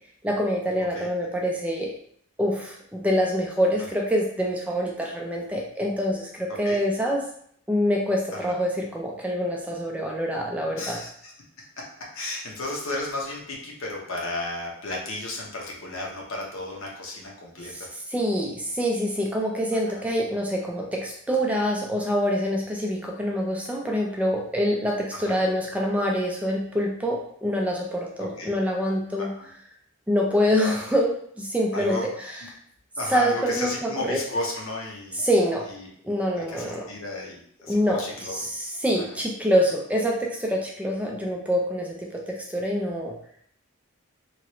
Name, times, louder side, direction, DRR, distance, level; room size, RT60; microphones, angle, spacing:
voice 1, 0.2-1.9 2.4-7.3 7.7-11.0 17.6-29.3 30.1-32.6 33.1-34.2 35.1-35.7 36.0-36.9 37.7-43.2, equal, 5° right, -1 dB, 0.4 m, -26 dB
voice 2, 10.8-11.3 12.1-17.9 19.9-20.0 25.2-25.4 28.2-28.5 29.4-29.5 31.7-32.0 33.0-35.2 35.7-35.9 36.5-38.4, left 2 dB, 65° left, -2 dB, 0.8 m, -33 dB
3.0 x 2.5 x 3.0 m, 0.65 s
head